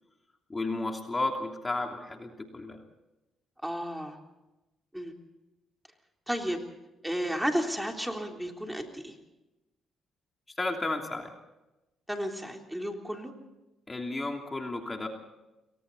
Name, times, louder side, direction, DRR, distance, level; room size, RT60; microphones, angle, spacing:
voice 1, 0.5-2.8 10.6-11.3 13.9-15.1, left 2 dB, 25° left, 2 dB, 3.0 m, -33 dB
voice 2, 3.6-4.2 4.9-5.1 6.3-6.6 7.0-9.2 12.1-13.3, equal, 5° right, 2 dB, 3.6 m, -32 dB
29.0 x 23.5 x 4.2 m, 0.99 s
cardioid pair, 90°, 0 cm